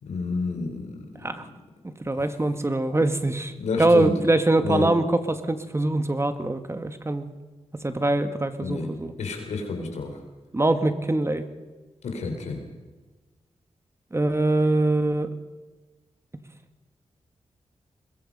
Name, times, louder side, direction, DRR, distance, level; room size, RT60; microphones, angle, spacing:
voice 1, 0.0-1.3 2.1-2.2 3.6-4.1 4.6-4.9 8.6-8.9 9.2-10.2 12.0-12.6, left 3 dB, 90° left, 4 dB, 4.0 m, -30 dB
voice 2, 2.1-3.5 3.8-7.3 7.8-9.1 10.5-11.4 14.1-15.3, right 2 dB, 25° right, 9 dB, 1.9 m, -23 dB
22.0 x 21.5 x 5.6 m, 1.3 s
cardioid pair, 70°, 11 cm